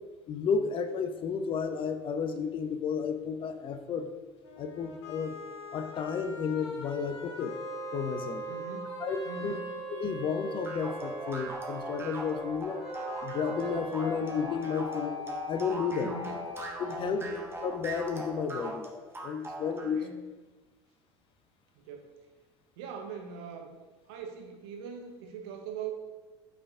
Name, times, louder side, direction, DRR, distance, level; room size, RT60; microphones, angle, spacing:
voice 1, 0.3-4.1 4.6-5.3 5.7-7.6 7.9-8.4 9.0-9.5 9.9-12.8 13.2-16.1 16.8-18.9 19.2-20.1, left 6 dB, 40° left, 9 dB, 0.4 m, -32 dB
sound 1, 4.4-15.4, left 3 dB, 80° left, 0.7 m, -46 dB
sound 2, 7.0-17.6, right 2 dB, 55° left, 1.5 m, -41 dB
voice 2, 8.5-9.8 16.0-16.4 17.0-17.3 19.8-20.3 21.8-22.1 22.8-23.7 24.1-25.9, right 5 dB, 65° right, 4 dB, 0.7 m, -42 dB
sound 3, 10.6-20.0, right 1 dB, 15° right, 0.9 m, -40 dB
5.1 x 3.3 x 2.5 m, 1.2 s
hypercardioid pair, 70°, 14 cm